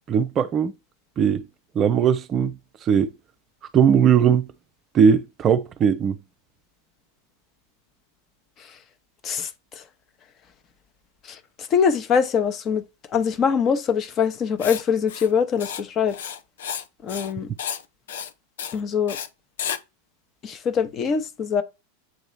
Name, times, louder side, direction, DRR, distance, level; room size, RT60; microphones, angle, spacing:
voice 1, 0.1-0.7 1.2-1.4 1.8-3.1 3.7-4.5 4.9-6.2, right 7 dB, 30° right, 0.5 m, -19 dB
voice 2, 11.7-12.8 13.1-16.2 17.0-17.5 18.7-19.2 20.4-21.6, left 6 dB, 30° left, 0.9 m, -23 dB
Writing, 14.6-14.8 15.1-15.3 15.6-15.8 16.1-16.8 17.1-17.3 17.6-17.8 18.1-18.3 18.6-18.8 19.1-19.3 19.6-19.8, left 8 dB, 60° left, 0.6 m, -32 dB
7.8 x 3.0 x 4.1 m
figure-of-eight pair, 90°, 0 cm